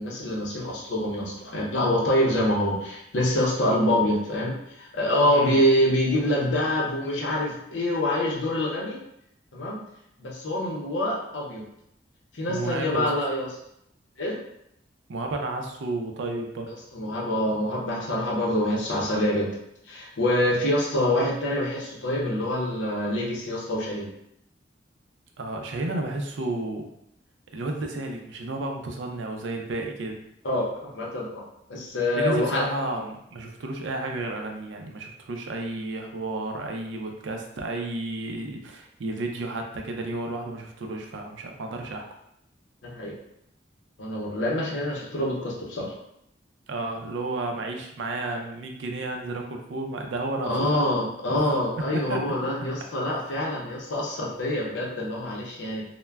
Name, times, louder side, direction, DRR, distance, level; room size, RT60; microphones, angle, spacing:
voice 1, 0.0-9.0 9.5-9.8 10.2-11.6 12.3-13.5 14.2-14.4 16.9-19.5 19.9-24.1 30.4-31.4 31.7-32.6 42.8-43.1 44.0-45.9 50.4-55.8, left 1 dB, 85° left, -3 dB, 0.6 m, -26 dB
voice 2, 5.2-5.6 12.5-13.1 15.1-16.7 25.4-26.9 27.5-30.2 32.1-42.0 46.7-50.8 51.3-51.4 51.8-52.2, right 2 dB, 85° right, 3 dB, 0.4 m, -32 dB
2.1 x 2.1 x 3.4 m, 0.77 s
head